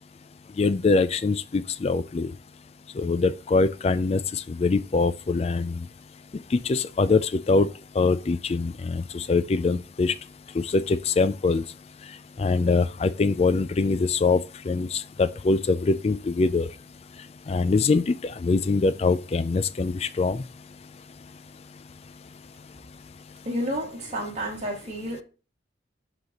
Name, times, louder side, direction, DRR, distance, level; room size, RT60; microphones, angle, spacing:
voice 1, 0.6-2.3 3.0-5.8 6.6-7.7 8.0-10.1 10.6-11.6 12.4-14.4 14.7-16.7 17.5-20.4, left 3 dB, 35° left, 0.3 m, -23 dB
voice 2, 23.5-25.2, equal, 35° right, 2.1 m, -30 dB
11.5 x 4.0 x 3.0 m
head